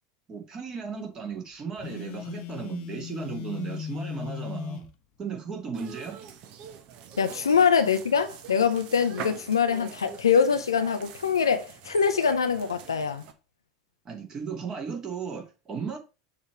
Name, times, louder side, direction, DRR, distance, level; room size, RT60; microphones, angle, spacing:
voice 1, 0.3-4.9 5.2-6.2 14.0-16.0, right 6 dB, 30° right, 2.2 m, -35 dB
Telephone, 1.8-4.9, left 10 dB, 45° left, 0.9 m, -37 dB
sound 1, 5.7-13.3, right 7 dB, 45° right, 1.1 m, -44 dB
voice 2, 7.2-13.2, left 6 dB, 80° left, 0.5 m, -24 dB
6.7 x 3.2 x 5.8 m
figure-of-eight pair, 80°, 2 cm